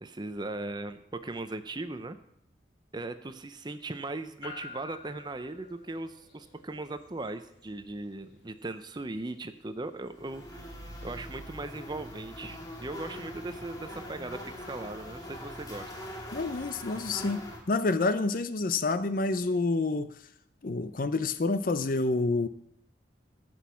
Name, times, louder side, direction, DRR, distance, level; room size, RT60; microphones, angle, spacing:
voice 1, 0.0-2.2 2.9-10.6 11.0-15.9, right 2 dB, 25° right, 10 dB, 0.6 m, -38 dB
sound 1, 4.4-18.7, left 3 dB, 70° left, 2.7 m, -55 dB
sound 2, 10.1-17.6, left 1 dB, 20° left, 1.7 m, -42 dB
voice 2, 16.3-20.1 20.6-22.5, left 3 dB, 50° left, 12 dB, 0.5 m, -28 dB
14.5 x 6.2 x 5.6 m, 0.73 s
head